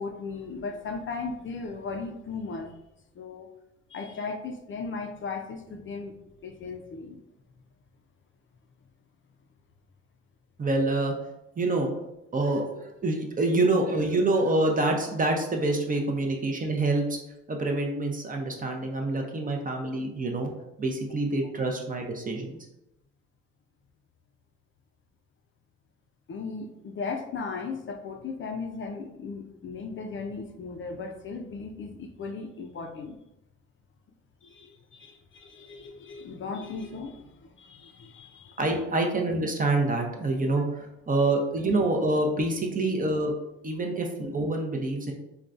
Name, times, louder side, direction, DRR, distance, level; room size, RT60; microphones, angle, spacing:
voice 1, 0.0-2.7 3.2-3.5 3.9-6.2 6.4-7.2 26.3-33.2 34.4-38.6, left 4 dB, 40° left, 4 dB, 0.4 m, -37 dB
voice 2, 10.6-11.1 11.6-11.9 12.3-17.2 17.5-20.5 20.8-22.6 38.6-43.3 43.6-45.1, right 2 dB, 30° right, 2 dB, 0.5 m, -26 dB
3.7 x 2.2 x 2.4 m, 0.89 s
cardioid pair, 90°, 30 cm